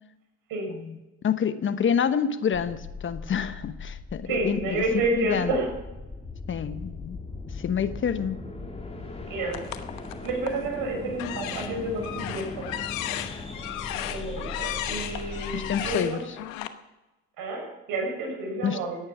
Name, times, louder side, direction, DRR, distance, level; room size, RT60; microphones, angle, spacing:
voice 1, 1.2-4.8 5.1-5.5 6.5-7.2 7.5-8.4 15.5-16.2 18.6-18.8, left 7 dB, 30° left, 12 dB, 1.1 m, -27 dB
sound 1, 2.5-16.0, left 3 dB, 15° left, 2.7 m, -39 dB
voice 2, 4.3-5.7 9.3-9.6 10.2-13.1 13.9-16.2 17.4-19.0, right 2 dB, 60° right, 1 dB, 6.8 m, -30 dB
sound 2, 9.5-10.7 11.1-16.7, left 13 dB, 80° left, 1.2 m, -35 dB
15.0 x 10.0 x 6.2 m, 1.0 s
hypercardioid pair, 80°, 39 cm